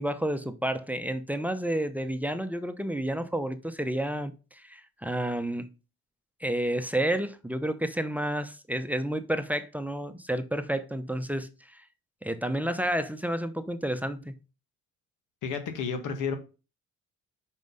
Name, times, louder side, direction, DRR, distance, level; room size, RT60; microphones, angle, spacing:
voice 1, 0.0-5.7 6.4-11.8 12.2-14.3, right 1 dB, 5° right, 0.8 m, -30 dB
voice 2, 15.4-16.3, left 6 dB, 90° left, 1.7 m, -31 dB
5.8 x 5.4 x 5.4 m
cardioid pair, 90°, 30 cm